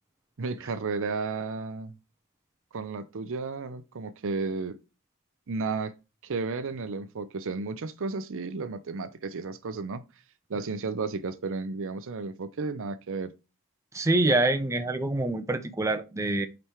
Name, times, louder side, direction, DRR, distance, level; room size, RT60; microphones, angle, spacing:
voice 1, 0.4-2.0 2.7-4.8 5.5-6.0 6.2-10.0 10.5-13.3, right 4 dB, 60° right, 0.6 m, -33 dB
voice 2, 13.9-16.5, right 2 dB, 15° right, 0.5 m, -25 dB
5.2 x 4.3 x 4.5 m
head